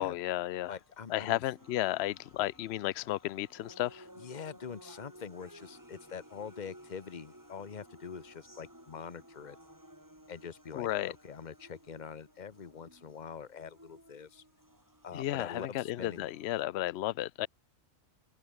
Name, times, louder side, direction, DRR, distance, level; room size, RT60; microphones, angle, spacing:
voice 1, 0.0-0.7 1.1-4.0 10.7-11.1 15.1-17.5, left 15 dB, 65° left, 0.8 m, -33 dB
sound 1, 0.6-16.6, right 1 dB, 15° right, 5.0 m, -57 dB
voice 2, 0.7-1.4 4.2-9.6 10.3-14.4 15.0-16.3, left 6 dB, 35° left, 1.2 m, -44 dB
sound 2, 1.1-6.0, left 5 dB, 85° left, 2.3 m, -66 dB
open air
omnidirectional pair, 1.4 m